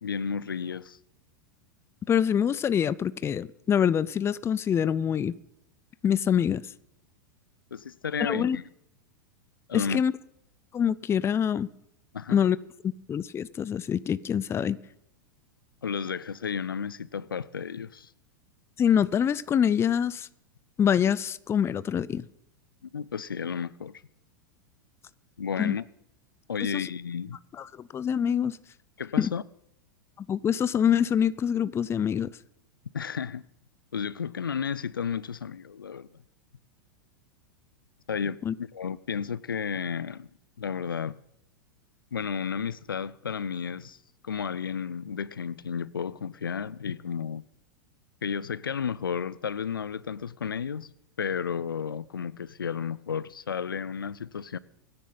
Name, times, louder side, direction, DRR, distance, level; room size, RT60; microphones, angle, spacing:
voice 1, 0.0-1.0 7.7-8.6 9.7-10.0 12.1-12.4 15.8-18.1 22.8-23.9 25.4-25.8 26.5-27.4 29.0-29.4 32.9-33.4 33.9-36.1 38.1-40.3 40.6-41.2 42.1-44.0 44.2-47.4 48.2-50.9 51.2-54.6, left 7 dB, 90° left, 0.6 m, -32 dB
voice 2, 2.1-5.4 6.0-6.6 8.2-8.6 9.7-10.1 10.7-11.7 12.3-12.6 13.1-14.8 18.8-20.3 20.8-22.3 25.6-25.8 26.7-26.9 27.6-28.6 29.2-29.3 30.2-32.3 38.4-38.5, left 8 dB, 25° left, 0.6 m, -25 dB
24.0 x 10.5 x 4.1 m
hypercardioid pair, 100°, 11 cm